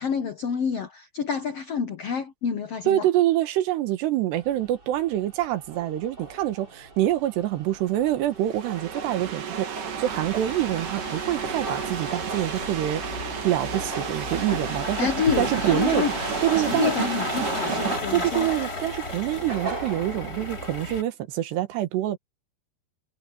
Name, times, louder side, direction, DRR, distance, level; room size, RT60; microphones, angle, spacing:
voice 1, 0.0-3.1 15.0-16.1 16.6-18.5, left 6 dB, 85° left, 1.3 m, -28 dB
voice 2, 2.9-15.1 15.4-16.0 16.4-16.9 18.1-22.2, right 13 dB, 85° right, 3.6 m, -26 dB
sound 1, 4.3-20.8, right 3 dB, 25° right, 7.1 m, -38 dB
sound 2, 8.3-18.0, right 8 dB, 55° right, 3.5 m, -33 dB
sound 3, 10.0-21.0, left 2 dB, 20° left, 4.2 m, -34 dB
omnidirectional pair, 4.7 m